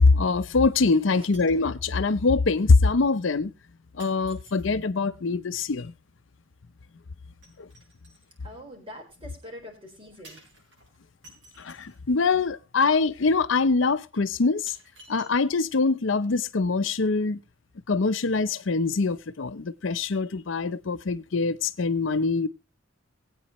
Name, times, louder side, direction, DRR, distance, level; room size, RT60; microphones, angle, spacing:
voice 1, 0.0-3.5 4.0-5.9 7.6-7.7 11.6-14.8 15.1-17.4 17.9-22.5, left 4 dB, 70° left, 0.6 m, -23 dB
sound 1, 0.7-1.0 1.3-1.7 2.7-2.8 4.0-4.9 7.4-8.3 10.2-12.0 13.1-13.2 13.8-13.9 14.7-15.9 16.2-16.3, right 2 dB, 60° right, 7.0 m, -53 dB
voice 2, 8.4-10.4, equal, 25° right, 4.3 m, -44 dB
20.5 x 8.8 x 3.0 m
head